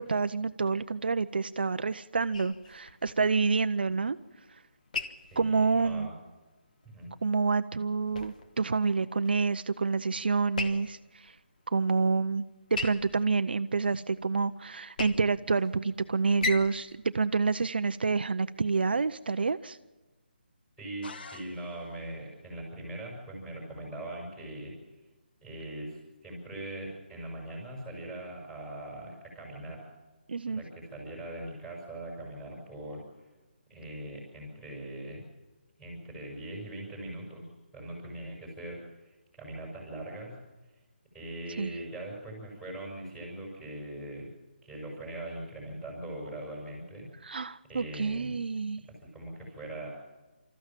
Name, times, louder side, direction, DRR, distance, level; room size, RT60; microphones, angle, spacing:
voice 1, 0.0-4.2 4.5-4.6 5.4-6.1 7.2-11.4 11.7-12.4 12.7-19.8 30.3-30.6 41.6-41.7 47.2-48.8, right 4 dB, 65° right, 10 dB, 0.6 m, -28 dB
sound 1, 2.3-18.4, left 4 dB, 45° left, 1.5 m, -42 dB
voice 2, 5.3-6.2 6.8-7.1 20.8-24.7 25.4-29.9 30.5-33.3 33.7-35.2 35.8-37.5 37.7-40.3 41.1-44.3 44.6-47.1 47.7-48.3 49.0-49.9, right 1 dB, 5° left, -3 dB, 5.8 m, -41 dB
sound 2, 21.0-22.1, left 4 dB, 60° left, 1.1 m, -47 dB
26.0 x 14.0 x 7.4 m, 1.2 s
hypercardioid pair, 170°, 6 cm